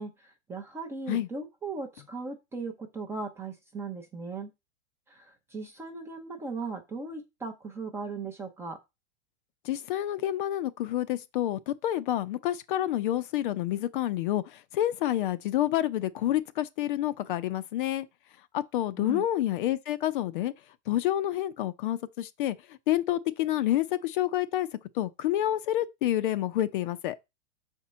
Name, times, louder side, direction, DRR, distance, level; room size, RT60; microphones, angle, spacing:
voice 1, 0.0-4.5 5.1-5.3 5.5-8.8 19.0-19.2, right 4 dB, 5° right, 0.5 m, -38 dB
voice 2, 9.7-14.4 14.7-18.1 18.5-20.5 20.9-22.6 22.9-24.7 25.0-27.2, left 13 dB, 45° left, 0.6 m, -28 dB
6.4 x 4.5 x 6.1 m
supercardioid pair, 160°, 37 cm